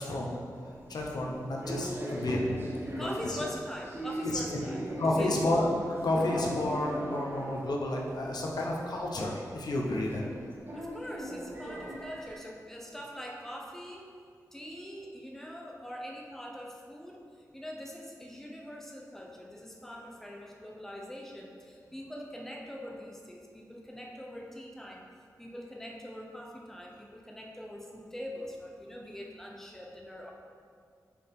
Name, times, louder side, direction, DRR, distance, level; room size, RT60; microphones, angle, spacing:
voice 1, 0.0-2.6 3.0-3.4 4.2-4.4 5.0-5.7 6.0-10.2, left 1 dB, 75° left, -2 dB, 0.9 m, -31 dB
sound 1, 0.6-12.4, equal, 30° right, 1.0 m, -40 dB
voice 2, 3.0-4.8 5.2-5.4 10.7-14.1 14.5-17.3 17.5-25.1 25.4-30.3, equal, 5° left, -1 dB, 0.7 m, -43 dB
6.9 x 4.6 x 3.7 m, 2.2 s
wide cardioid pair, 125°, 7 cm